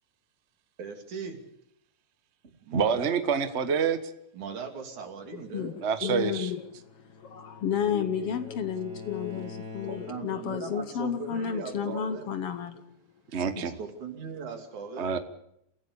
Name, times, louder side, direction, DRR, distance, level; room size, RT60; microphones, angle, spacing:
voice 1, 0.8-1.4 2.6-3.1 4.3-5.8 9.9-12.3 13.6-15.1, right 5 dB, 75° right, 5 dB, 4.3 m, -39 dB
voice 2, 2.7-4.0 5.8-6.5 13.3-13.8 15.0-15.2, right 6 dB, 55° right, 10 dB, 0.7 m, -27 dB
voice 3, 6.0-12.8 13.3-13.7, left 8 dB, 60° left, 11 dB, 1.9 m, -32 dB
Bowed string instrument, 6.6-10.5, left 4 dB, 35° right, 3.4 m, -45 dB
28.5 x 16.0 x 6.9 m, 0.75 s
omnidirectional pair, 3.5 m